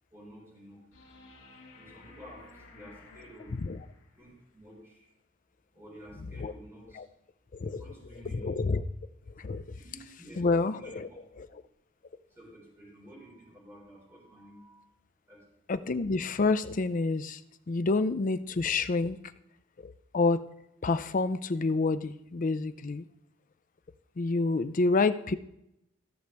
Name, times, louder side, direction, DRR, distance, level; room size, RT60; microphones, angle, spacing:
voice 1, 0.1-0.8 1.7-3.6 4.1-5.1 5.7-7.0 7.8-8.6 9.7-11.2 11.5-11.6 12.3-14.9 15.3-15.7, equal, 15° right, -5 dB, 4.5 m, -51 dB
sound 1, 0.9-4.3 6.9-7.0, left 3 dB, 65° left, 2.0 m, -54 dB
voice 2, 7.5-7.8 8.3-8.8 9.4-9.6 10.4-11.1 11.4-11.5 15.7-17.4 17.7-19.2 19.8-20.4 20.8-23.0 24.2-25.4, left 3 dB, 40° left, 11 dB, 0.4 m, -28 dB
15.0 x 6.4 x 3.4 m, 0.83 s
head